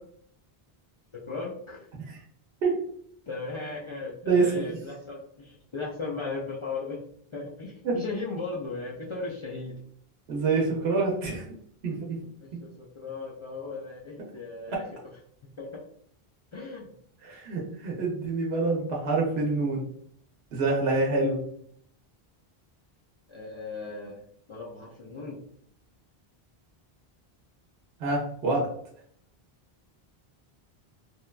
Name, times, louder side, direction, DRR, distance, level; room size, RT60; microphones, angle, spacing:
voice 1, 1.1-1.9 3.3-7.0 7.3-9.8 12.4-14.8 15.6-15.7 16.5-16.9 23.3-24.2 24.5-25.4, left 3 dB, 55° left, -4 dB, 0.3 m, -37 dB
voice 2, 4.3-4.8 7.8-8.0 10.3-11.5 11.8-12.2 12.5-12.6 14.7-14.8 17.2-19.8 20.5-21.4 28.0-28.7, right 3 dB, 85° right, -2 dB, 0.9 m, -26 dB
2.9 x 2.1 x 2.2 m, 0.64 s
omnidirectional pair, 1.0 m